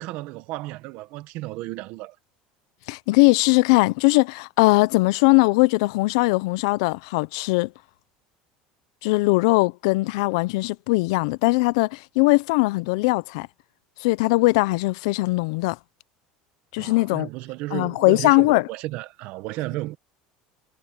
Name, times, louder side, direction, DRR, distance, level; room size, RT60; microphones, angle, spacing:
voice 1, 0.0-2.1 16.8-20.0, right 18 dB, 55° right, 1.3 m, -33 dB
voice 2, 2.9-7.7 9.0-13.5 14.0-15.8 16.7-17.3 17.7-18.7, left 24 dB, 75° left, 0.5 m, -20 dB
cardioid pair, 155°, 3 cm